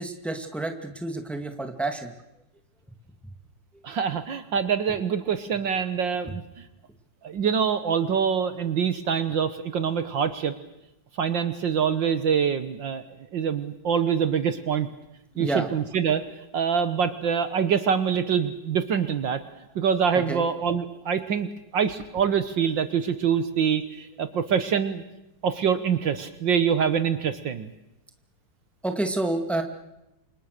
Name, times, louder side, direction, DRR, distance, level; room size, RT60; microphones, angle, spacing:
voice 1, 0.0-2.1 15.4-15.7 20.3-20.4 28.8-29.6, right 2 dB, ahead, 5 dB, 2.0 m, -29 dB
voice 2, 3.8-6.7 7.2-10.5 11.2-13.0 13.3-14.9 15.4-16.2 16.5-19.4 19.7-25.0 25.4-27.7, right 7 dB, 60° right, 11 dB, 1.8 m, -25 dB
28.5 x 26.5 x 6.7 m, 0.92 s
omnidirectional pair, 2.4 m